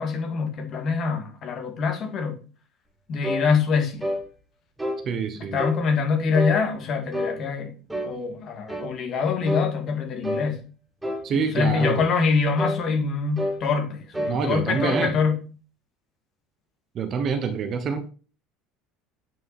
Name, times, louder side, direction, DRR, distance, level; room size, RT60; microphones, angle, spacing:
voice 1, 0.0-2.4 3.1-4.1 5.5-7.7 8.0-10.6 11.3-15.4, left 5 dB, 35° left, 2.6 m, -25 dB
sound 1, 3.2-3.5 4.0-4.2 4.8-5.0 5.6-5.8 6.3-6.6 7.1-7.4 7.9-8.2 8.7-8.9 9.5-9.7 10.2-10.5 11.0-11.3 11.8-12.0 12.6-12.8 13.4-13.6 14.1-14.4 14.7-15.2, equal, 5° right, 2.1 m, -28 dB
voice 2, 5.0-5.6 11.2-12.0 14.3-15.2 16.9-18.1, right 5 dB, 30° right, 1.1 m, -26 dB
8.7 x 6.4 x 4.4 m
cardioid pair, 160°, 0 cm